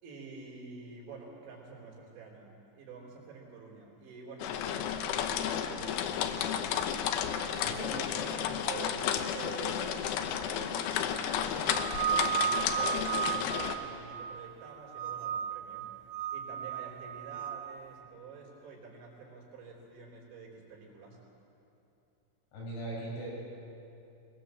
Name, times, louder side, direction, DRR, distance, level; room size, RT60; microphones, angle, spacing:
voice 1, 0.0-6.6 7.6-9.1 9.3-11.8 12.3-15.9 16.3-21.2, right 5 dB, 70° right, -2 dB, 5.9 m, -48 dB
sound 1, 4.4-13.8, left 9 dB, 80° left, 3.5 m, -32 dB
sound 2, 11.7-14.6 14.9-15.7 16.1-17.6, right 9 dB, 85° right, 3.7 m, -34 dB
voice 2, 22.5-23.3, right 2 dB, 65° left, -5 dB, 9.6 m, -39 dB
22.0 x 21.5 x 7.7 m, 2.8 s
omnidirectional pair, 5.6 m